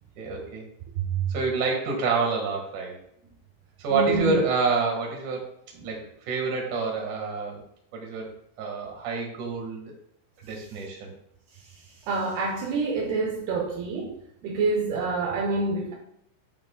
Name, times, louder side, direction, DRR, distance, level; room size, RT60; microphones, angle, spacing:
voice 1, 0.2-0.7 1.3-3.0 3.8-5.5 5.8-7.6 7.9-8.3 8.6-9.9 10.4-11.1, right 4 dB, 60° right, 0 dB, 2.2 m, -28 dB
voice 2, 1.0-1.3 3.9-4.4 12.1-14.1 14.4-15.9, right 3 dB, 85° right, 0 dB, 2.3 m, -27 dB
11.0 x 6.1 x 2.3 m, 0.73 s
omnidirectional pair, 5.9 m